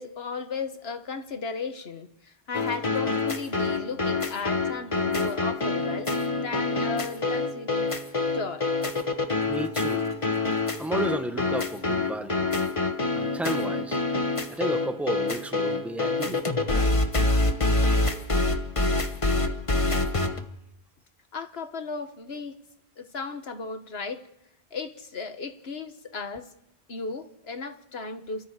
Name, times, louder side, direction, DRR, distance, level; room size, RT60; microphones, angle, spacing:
voice 1, 0.0-7.9 8.3-8.7 21.3-22.6 23.0-24.3 24.7-26.5 26.9-28.5, left 4 dB, 80° left, 1.7 m, -35 dB
sound 1, 2.5-20.4, left 2 dB, 30° left, 1.3 m, -26 dB
voice 2, 9.5-10.0 10.8-12.5 13.1-16.4 18.0-18.1, right 1 dB, ahead, 1.1 m, -33 dB
29.0 x 13.5 x 8.4 m
omnidirectional pair, 1.0 m